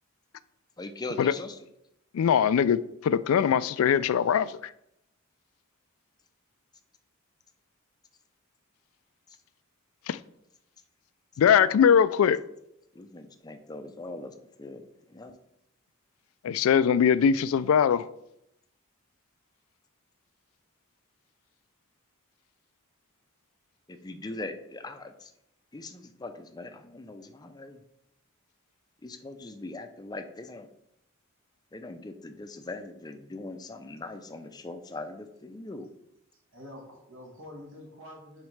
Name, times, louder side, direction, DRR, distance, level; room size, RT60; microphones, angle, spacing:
voice 1, 0.8-1.6 4.4-4.5 13.0-14.8 15.1-15.3 23.9-25.3 25.7-27.8 29.0-30.7 31.7-35.9, left 2 dB, 20° left, 0.5 m, -41 dB
voice 2, 2.1-4.6 10.1-10.2 11.4-12.4 16.4-18.1, left 7 dB, 85° left, 0.3 m, -22 dB
voice 3, 36.5-38.5, left 1 dB, 65° right, 1.5 m, -46 dB
9.6 x 4.0 x 3.2 m
head